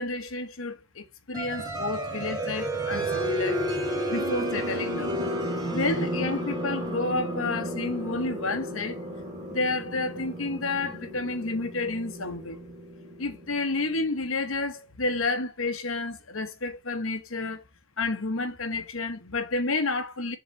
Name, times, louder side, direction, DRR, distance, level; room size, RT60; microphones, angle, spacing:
voice 1, 0.0-3.6 4.1-5.2 5.7-9.0 9.5-12.6 13.2-17.6 18.0-20.4, left 3 dB, 80° left, 1.2 m, -30 dB
sound 1, 1.3-13.8, right 1 dB, 20° right, 2.3 m, -32 dB
7.0 x 4.0 x 4.2 m
head